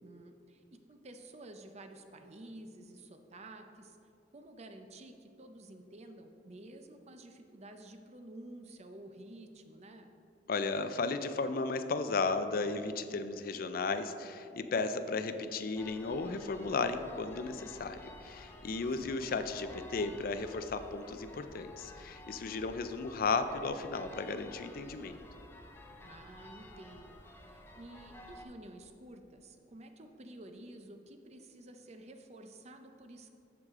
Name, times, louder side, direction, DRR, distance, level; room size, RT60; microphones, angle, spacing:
voice 1, 0.0-4.0 4.3-10.1 26.0-27.2 27.5-33.3, right 1 dB, 35° right, 6 dB, 0.6 m, -51 dB
voice 2, 10.5-25.1, left 4 dB, 55° left, 10 dB, 0.4 m, -34 dB
Church Bells Distant A, 15.8-28.5, left 1 dB, 15° left, 0.6 m, -52 dB
14.0 x 4.8 x 3.7 m, 2.6 s
head